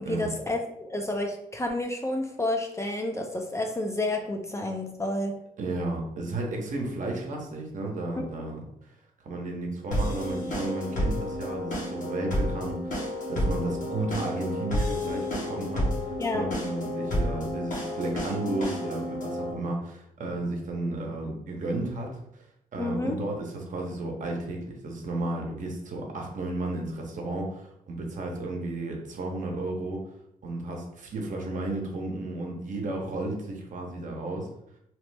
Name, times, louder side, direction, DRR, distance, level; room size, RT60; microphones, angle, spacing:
voice 1, 0.0-5.4 8.2-8.3 16.2-16.5 22.8-23.2, left 1 dB, 20° left, 3 dB, 0.4 m, -30 dB
voice 2, 5.6-8.6 9.2-22.5 22.7-30.0 30.4-34.5, right 2 dB, 60° right, 1 dB, 0.8 m, -33 dB
sound 1, 9.9-19.5, left 1 dB, 60° left, 1.0 m, -30 dB
2.9 x 2.1 x 3.3 m, 0.75 s
cardioid pair, 80°, 15 cm